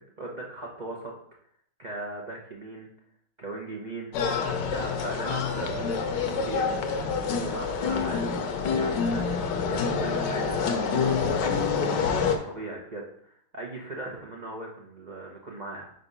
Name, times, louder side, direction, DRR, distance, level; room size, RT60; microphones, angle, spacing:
voice 1, 0.2-1.1 1.8-2.9 3.4-4.2 4.7-6.8 7.4-8.3 8.8-9.4 9.7-11.6 12.1-15.9, right 2 dB, 85° right, -2 dB, 0.4 m, -38 dB
sound 1, 4.1-12.4, left 5 dB, 70° left, 1.2 m, -27 dB
4.9 x 4.1 x 5.4 m, 0.65 s
omnidirectional pair, 2.2 m